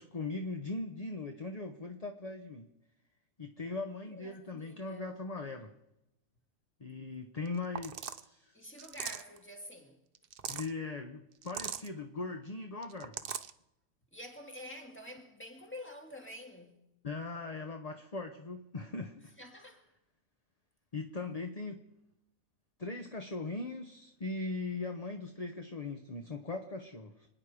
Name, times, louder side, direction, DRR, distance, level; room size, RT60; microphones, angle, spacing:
voice 1, 0.0-2.7 3.4-5.7 6.8-8.6 10.5-13.2 17.0-19.3 20.9-21.8 22.8-27.3, left 3 dB, 30° left, 0.8 m, -40 dB
voice 2, 4.0-5.1 8.5-10.0 14.1-16.9 19.4-19.9, left 1 dB, 5° left, 2.2 m, -48 dB
sound 1, 7.4-7.5 7.7-8.2 8.8-9.4 10.1-10.7 11.4-11.9 12.8-13.5, right 8 dB, 50° right, 0.7 m, -40 dB
27.5 x 10.0 x 5.0 m
omnidirectional pair, 1.6 m